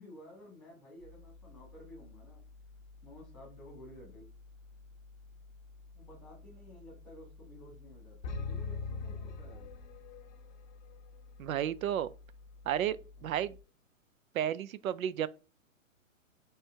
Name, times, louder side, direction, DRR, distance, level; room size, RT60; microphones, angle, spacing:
voice 1, 0.0-2.4 3.0-4.3 5.9-9.7 13.2-13.3, left 1 dB, ahead, 1.4 m, -53 dB
sound 1, 1.0-13.6, left 3 dB, 20° right, 0.6 m, -54 dB
sound 2, 8.2-10.3, left 4 dB, 35° left, 0.6 m, -39 dB
voice 2, 11.4-12.1 12.7-13.6 14.3-15.3, right 10 dB, 90° right, 0.5 m, -32 dB
4.4 x 3.2 x 3.4 m
hypercardioid pair, 155°, 40 cm